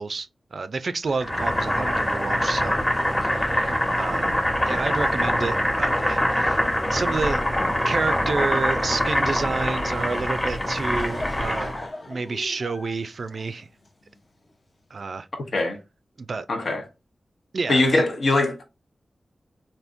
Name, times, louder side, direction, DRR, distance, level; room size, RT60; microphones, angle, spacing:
voice 1, 0.0-2.7 3.2-4.4 4.7-7.4 7.8-11.7 12.1-13.7 14.9-15.3 16.2-16.5 17.5-18.0, right 4 dB, 60° right, 0.3 m, -29 dB
Boiling, 1.2-11.8, equal, 20° left, 0.9 m, -24 dB
Laughter / Crowd, 10.4-14.2, left 2 dB, 40° left, 0.5 m, -38 dB
voice 2, 16.5-16.8 17.7-18.7, left 2 dB, 70° left, 0.8 m, -22 dB
3.5 x 2.6 x 2.5 m
wide cardioid pair, 100°, 0 cm